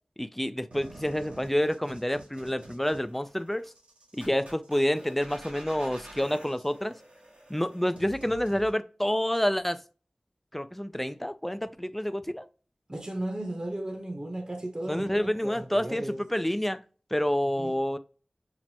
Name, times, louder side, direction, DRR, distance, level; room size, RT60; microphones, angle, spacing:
voice 1, 0.2-3.7 4.1-6.9 7.5-9.8 10.5-12.4 14.9-16.1 16.3-16.8 17.1-18.0, equal, 10° left, 0.4 m, -28 dB
sound 1, 0.7-8.7, right 1 dB, 85° right, 1.2 m, -48 dB
voice 2, 12.9-16.3 17.6-17.8, right 1 dB, 35° right, 0.9 m, -35 dB
5.9 x 2.0 x 2.8 m
wide cardioid pair, 40°, 2 cm